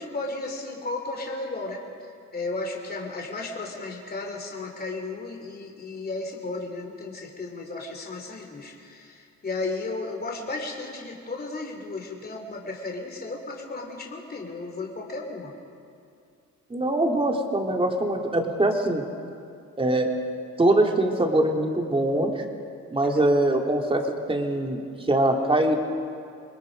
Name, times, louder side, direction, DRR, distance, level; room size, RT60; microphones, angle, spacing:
voice 1, 0.0-1.8 2.3-15.5, left 3 dB, 30° left, 1 dB, 3.2 m, -34 dB
voice 2, 16.7-19.0 19.8-20.1 20.6-22.4 22.9-25.8, right 1 dB, 20° right, 2 dB, 2.5 m, -23 dB
26.0 x 20.5 x 5.2 m, 2.4 s
cardioid pair, 90°, 30 cm